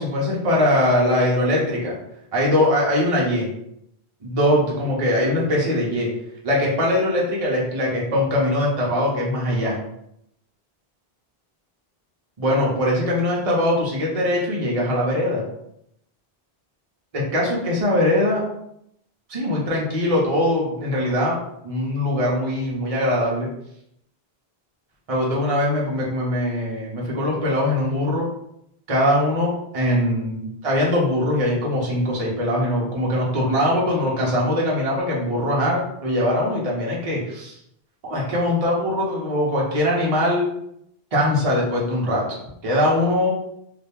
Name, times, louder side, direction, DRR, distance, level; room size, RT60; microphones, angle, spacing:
voice 1, 0.0-2.0 2.3-3.5 4.2-6.1 6.4-9.8 12.4-15.4 17.1-18.4 19.3-21.4 21.6-23.5 25.1-28.3 28.9-37.6 38.0-40.5 41.1-42.3 42.6-43.3, left 1 dB, 40° right, -4 dB, 0.8 m, -21 dB
2.8 x 2.5 x 3.5 m, 0.75 s
omnidirectional pair, 1.0 m